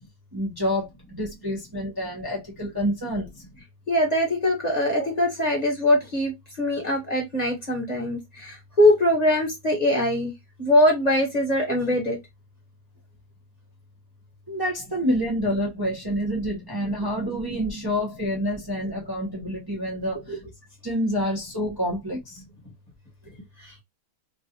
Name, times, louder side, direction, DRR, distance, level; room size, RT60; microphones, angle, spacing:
voice 1, 0.3-3.3 14.5-20.4 20.8-22.4, equal, 35° right, 0.3 m, -28 dB
voice 2, 3.9-10.3 10.6-12.2 20.3-20.4 23.6-23.8, left 1 dB, 20° left, 1.2 m, -22 dB
3.9 x 2.5 x 2.9 m
omnidirectional pair, 2.4 m